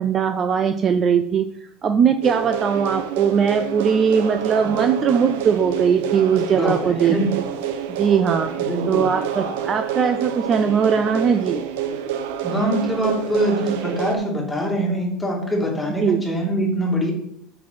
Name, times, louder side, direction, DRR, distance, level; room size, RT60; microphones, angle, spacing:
voice 1, 0.0-1.4 1.8-7.2 7.9-8.5 8.9-11.6 16.0-16.2, right 7 dB, 25° right, 8 dB, 0.4 m, -20 dB
sound 1, 2.2-14.2, right 8 dB, 90° right, 1.0 m, -28 dB
voice 2, 7.0-7.3 8.6-9.1 12.4-17.1, equal, 5° left, -2 dB, 2.2 m, -23 dB
6.2 x 5.9 x 6.2 m, 0.68 s
cardioid pair, 165°, 0 cm